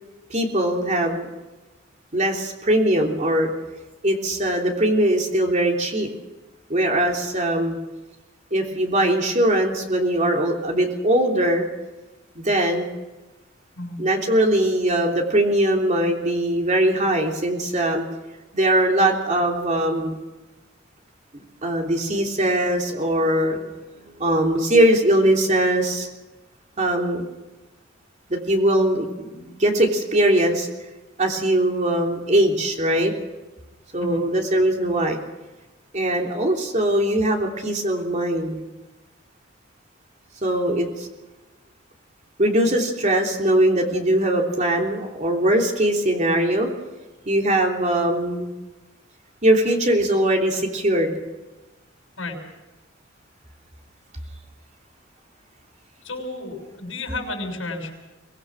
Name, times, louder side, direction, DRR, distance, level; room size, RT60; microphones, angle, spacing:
voice 1, 0.3-1.3 2.1-3.5 4.0-6.1 6.7-7.8 8.5-11.7 12.3-12.9 14.0-18.0 18.5-20.1 21.3-23.7 24.0-26.1 26.8-27.2 28.3-30.7 31.2-33.1 33.9-35.2 35.9-38.6 40.4-41.1 42.4-46.7 47.2-48.5 49.4-51.2, right 1 dB, 35° right, 1 dB, 3.4 m, -21 dB
voice 2, 56.0-57.9, left 2 dB, 80° left, 2 dB, 6.1 m, -32 dB
24.0 x 20.0 x 6.3 m, 1.1 s
head